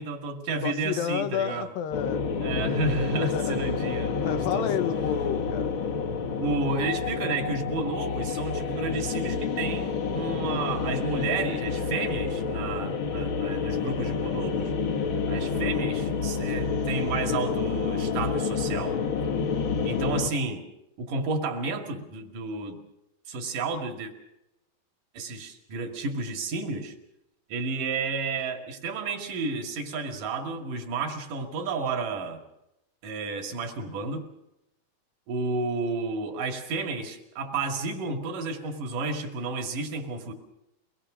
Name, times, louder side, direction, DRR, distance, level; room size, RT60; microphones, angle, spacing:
voice 1, 0.0-1.7 2.4-4.7 6.4-14.7 15.3-19.0 19.8-20.6 21.0-22.8 23.3-24.1 25.1-26.9 27.5-32.4 33.0-34.3 35.3-40.3, right 3 dB, 60° right, 4 dB, 3.7 m, -31 dB
voice 2, 0.6-2.3 3.2-3.8 4.2-5.7, left 9 dB, 75° left, 11 dB, 2.7 m, -31 dB
sound 1, 1.9-20.3, left 5 dB, 55° left, 1.4 m, -29 dB
24.0 x 20.5 x 6.2 m, 0.86 s
omnidirectional pair, 4.3 m